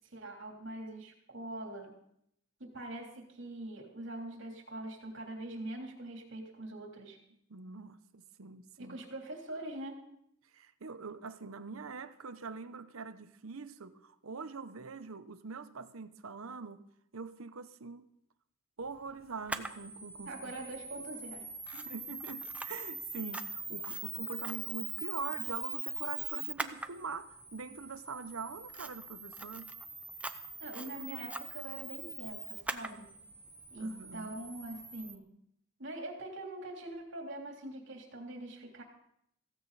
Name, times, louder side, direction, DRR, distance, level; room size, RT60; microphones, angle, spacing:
voice 1, 0.1-1.9 2.6-7.2 8.8-10.0 20.3-21.4 21.7-21.9 30.6-33.1 33.7-35.2 35.8-38.8, right 1 dB, 60° right, 3.3 m, -43 dB
voice 2, 7.5-9.0 10.5-16.8 17.1-18.1 18.8-20.3 21.8-29.7 33.8-34.4, right 4 dB, 85° right, 0.9 m, -44 dB
Camera, 19.5-35.1, right 3 dB, 5° right, 0.6 m, -42 dB
16.0 x 15.5 x 4.1 m
head